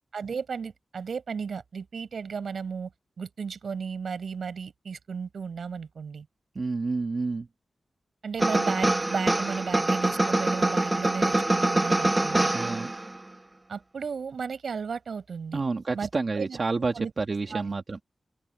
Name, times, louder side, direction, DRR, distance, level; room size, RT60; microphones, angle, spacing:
voice 1, 0.1-2.9 3.2-6.3 8.2-12.5 13.7-15.6 15.9-16.1 16.4-16.6 17.0-17.1 17.5-17.7, right 6 dB, 80° right, 7.3 m, -34 dB
voice 2, 6.6-7.5 12.5-12.9 15.5-18.0, right 3 dB, 50° right, 1.8 m, -29 dB
sound 1, 8.4-13.2, right 2 dB, 25° right, 1.0 m, -25 dB
open air
wide cardioid pair, 75°, 0 cm